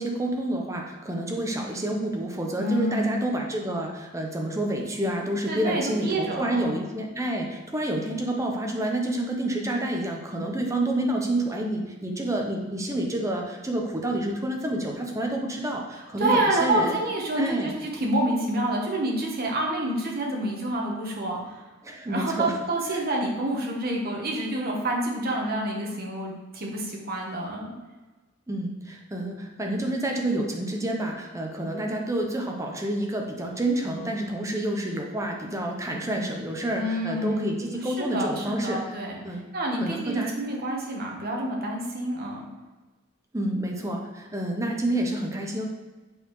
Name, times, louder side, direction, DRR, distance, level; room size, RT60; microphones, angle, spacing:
voice 1, 0.0-17.0 17.4-17.8 21.8-22.6 22.9-23.0 28.5-38.9 39.2-39.4 39.8-40.4 43.3-45.7, right 1 dB, 15° right, 1 dB, 0.8 m, -29 dB
voice 2, 2.6-3.1 5.5-6.7 16.2-21.6 22.1-27.7 36.7-37.5 37.8-39.2 39.5-42.5, right 1 dB, 45° right, -1 dB, 1.2 m, -28 dB
7.9 x 4.1 x 3.1 m, 1.2 s
head